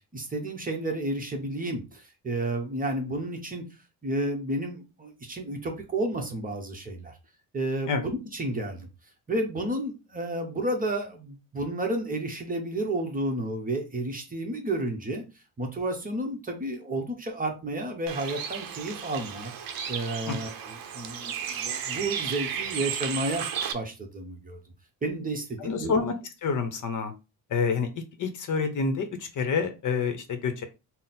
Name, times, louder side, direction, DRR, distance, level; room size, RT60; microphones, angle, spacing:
voice 1, 0.1-3.6 4.0-7.1 7.5-8.9 9.3-15.2 15.6-19.5 19.9-23.5 23.7-24.6 25.0-25.9, right 1 dB, 20° right, 3 dB, 0.8 m, -31 dB
Bird, 18.1-23.7, right 8 dB, 55° right, 0.6 m, -34 dB
voice 2, 25.6-26.2 26.4-27.1 27.5-27.9 28.2-30.6, left 5 dB, 50° left, 7 dB, 0.8 m, -27 dB
3.9 x 2.0 x 4.1 m, 0.28 s
cardioid pair, 115°, 41 cm